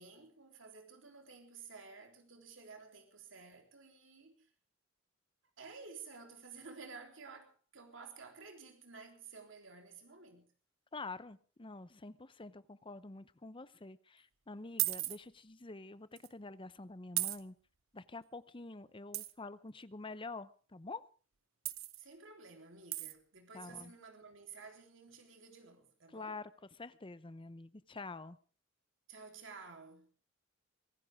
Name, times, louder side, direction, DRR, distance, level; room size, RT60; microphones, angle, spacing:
voice 1, 0.0-4.5 5.6-10.5 22.0-26.4 29.1-30.1, right 4 dB, 65° right, 3.7 m, -53 dB
voice 2, 10.9-17.5 17.9-21.0 23.5-23.9 26.1-26.5 26.8-28.4, left 3 dB, 25° left, 0.8 m, -47 dB
sound 1, 14.8-15.2 16.2-16.3 17.2-17.4 19.1-19.3 21.6-22.0 22.9-23.1, right 17 dB, 80° right, 0.9 m, -35 dB
24.0 x 16.0 x 3.6 m
head